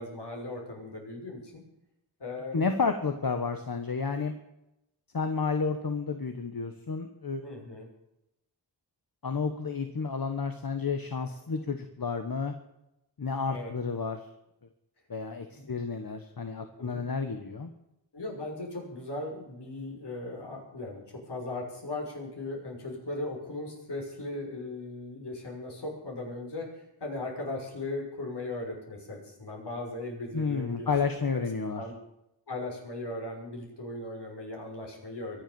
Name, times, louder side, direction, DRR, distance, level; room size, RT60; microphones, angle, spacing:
voice 1, 0.0-1.6 2.2-2.7 7.4-7.9 13.5-13.7 15.5-15.8 16.8-17.0 18.1-26.7 27.0-31.2 31.8-31.9 32.5-35.4, left 2 dB, 70° left, -1 dB, 6.5 m, -38 dB
voice 2, 2.5-4.3 5.1-7.4 9.2-12.5 13.2-14.2 15.1-17.7 30.3-31.8, left 5 dB, 55° left, 7 dB, 1.4 m, -31 dB
23.5 x 8.0 x 7.1 m, 0.87 s
wide cardioid pair, 80°, 42 cm